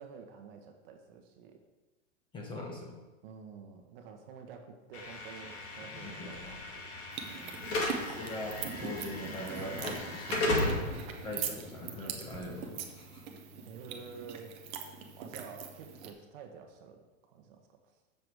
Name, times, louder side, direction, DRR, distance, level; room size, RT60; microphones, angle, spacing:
voice 1, 0.0-1.6 3.2-7.0 7.3-7.9 10.3-10.5 13.6-14.6 15.2-17.0 17.3-17.9, right 6 dB, 45° right, 4 dB, 1.1 m, -50 dB
voice 2, 2.3-3.0 5.9-6.6 7.8-10.9 11.2-13.2, left 1 dB, 10° left, -2 dB, 1.3 m, -42 dB
Slam / Alarm, 4.9-13.0, left 2 dB, 50° left, 2.2 m, -36 dB
sound 1, 7.1-16.1, right 7 dB, 15° right, 0.4 m, -42 dB
7.1 x 6.7 x 4.7 m, 1.1 s
supercardioid pair, 155°, 38 cm